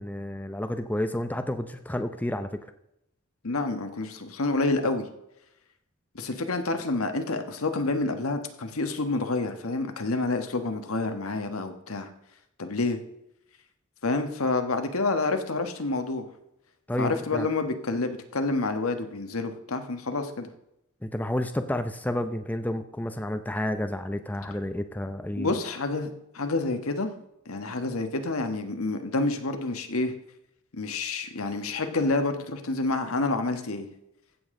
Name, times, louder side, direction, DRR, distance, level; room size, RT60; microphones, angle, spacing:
voice 1, 0.0-2.6 16.9-17.5 21.0-25.5, left 1 dB, 10° left, 8 dB, 0.6 m, -30 dB
voice 2, 3.4-5.1 6.1-12.1 12.6-13.0 14.0-16.2 17.0-20.5 25.4-26.1 26.3-27.1 27.4-30.1 30.7-33.9, left 3 dB, 85° left, 6 dB, 1.3 m, -28 dB
15.5 x 7.2 x 3.7 m, 0.82 s
head